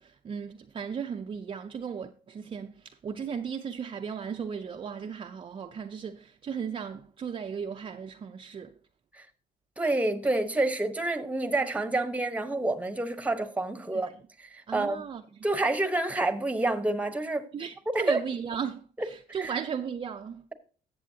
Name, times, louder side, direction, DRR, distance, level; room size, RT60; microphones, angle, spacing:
voice 1, 0.0-8.7 13.9-14.0 14.7-15.2 17.5-20.4, right 7 dB, 30° right, 0.5 m, -36 dB
voice 2, 9.8-14.1 14.4-15.0 15.4-17.5 17.9-18.2 19.4-19.5, right 2 dB, 10° right, 1.0 m, -28 dB
14.0 x 7.7 x 2.8 m
cardioid pair, 110°, 17 cm